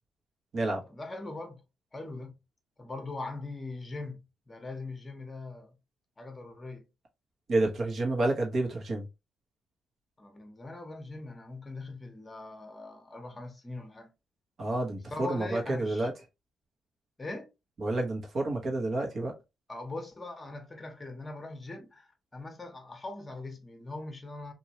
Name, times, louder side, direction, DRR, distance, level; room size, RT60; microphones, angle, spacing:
voice 1, 0.8-1.6 1.9-2.3 2.8-5.8 6.2-6.9 10.2-14.1 15.1-16.1 17.2-17.5 19.7-24.5, left 2 dB, 20° left, 0.9 m, -41 dB
voice 2, 7.5-9.1 14.6-16.1 17.8-19.3, right 2 dB, 50° right, 1.2 m, -29 dB
3.0 x 2.6 x 2.9 m
cardioid pair, 90°, 0 cm